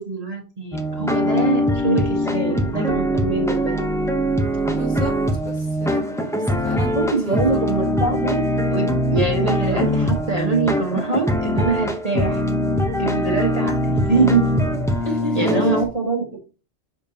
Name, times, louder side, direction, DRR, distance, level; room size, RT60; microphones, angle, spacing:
voice 1, 0.0-3.8 6.9-12.4 13.0-14.5 15.3-16.4, right 4 dB, 35° right, 0 dB, 1.3 m, -23 dB
sound 1, 0.7-15.9, equal, 5° left, 0.6 m, -22 dB
voice 2, 4.7-5.1 5.4-7.4 15.0-15.5, equal, 40° left, -3 dB, 2.8 m, -31 dB
6.6 x 5.2 x 2.8 m, 0.32 s
omnidirectional pair, 1.1 m